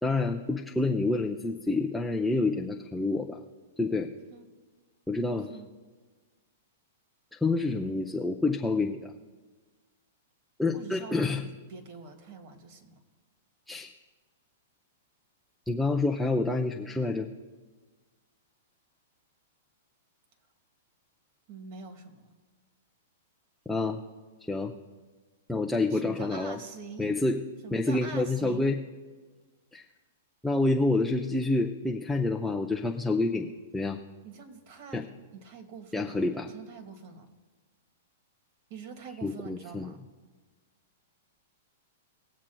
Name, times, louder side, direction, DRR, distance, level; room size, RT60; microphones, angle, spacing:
voice 1, 0.0-3.4 3.8-4.1 5.1-5.6 7.4-9.1 10.6-11.4 13.7-13.9 15.7-17.3 23.7-24.0 24.5-24.7 25.5-26.6 27.0-27.4 27.7-28.8 29.7-29.8 30.4-34.0 34.9-35.0 35.9-36.5 39.2-39.9, left 2 dB, ahead, -1 dB, 0.5 m, -28 dB
voice 2, 10.7-13.0 21.5-22.3 25.9-27.1 27.6-28.7 34.2-35.1 35.3-36.2 36.5-37.3 38.7-40.0, right 5 dB, 50° right, 6 dB, 1.6 m, -45 dB
20.5 x 7.4 x 2.3 m, 1.4 s
hypercardioid pair, 125°, 0 cm